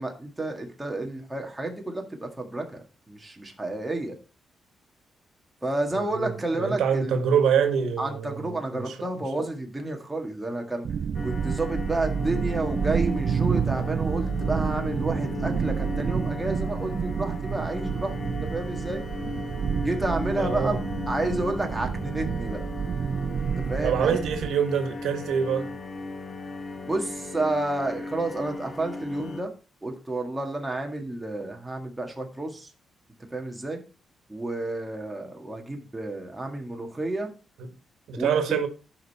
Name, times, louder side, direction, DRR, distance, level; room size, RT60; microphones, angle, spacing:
voice 1, 0.0-4.1 5.6-7.1 8.0-10.9 11.2-18.1 18.4-19.0 19.8-20.8 21.1-22.6 23.7-24.2 26.8-29.5 29.8-32.7 33.3-33.8 34.3-37.3 38.2-38.6, right 2 dB, 10° right, 1.8 m, -30 dB
voice 2, 5.9-8.9 20.4-20.8 23.8-25.7 37.6-37.7 38.1-38.7, right 7 dB, 85° right, 1.4 m, -25 dB
sound 1, 10.8-24.5, right 7 dB, 55° right, 0.4 m, -29 dB
sound 2, 11.1-29.4, left 3 dB, 35° left, 1.3 m, -36 dB
11.0 x 5.3 x 4.2 m
cardioid pair, 125°, 0 cm